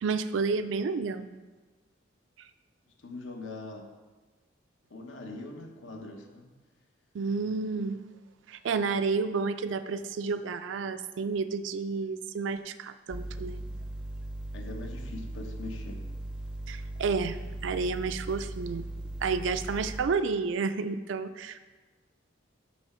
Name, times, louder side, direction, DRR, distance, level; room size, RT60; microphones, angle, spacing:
voice 1, 0.0-1.4 7.1-8.0 8.5-13.6 16.7-18.8 19.2-21.6, right 4 dB, 65° right, 11 dB, 0.4 m, -30 dB
voice 2, 2.9-3.9 4.9-6.6 14.5-16.1, left 2 dB, 70° left, 3 dB, 0.9 m, -42 dB
sound 1, 13.1-20.0, right 1 dB, 5° right, 0.5 m, -38 dB
6.2 x 5.6 x 4.3 m, 1.3 s
head